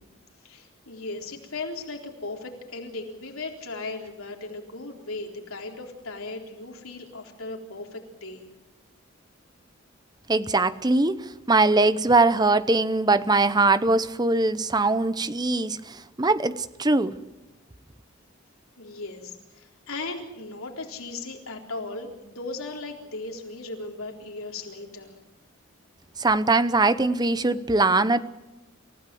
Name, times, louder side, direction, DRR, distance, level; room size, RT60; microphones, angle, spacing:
voice 1, 0.4-8.5 18.8-25.1, left 3 dB, 90° left, 4.0 m, -37 dB
voice 2, 10.3-17.2 26.2-28.2, right 3 dB, 20° right, 0.8 m, -22 dB
28.0 x 16.0 x 7.8 m
head